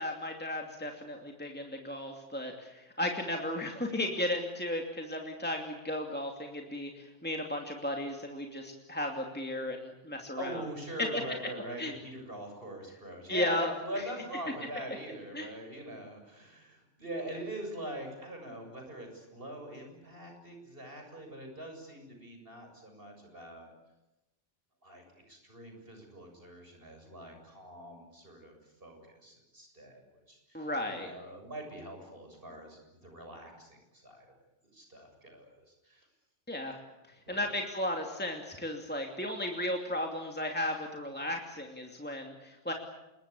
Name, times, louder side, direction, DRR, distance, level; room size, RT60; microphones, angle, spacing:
voice 1, 0.0-10.6 11.0-11.2 11.8-11.9 13.3-13.7 15.3-15.5 30.5-31.1 36.5-36.8 37.3-42.7, left 1 dB, 10° left, 2 dB, 2.7 m, -35 dB
voice 2, 10.4-23.7 24.8-30.0 30.3-34.3 34.7-36.1 37.3-37.6, right 1 dB, 50° right, 4 dB, 7.5 m, -43 dB
27.0 x 23.0 x 8.4 m, 0.98 s
omnidirectional pair, 1.2 m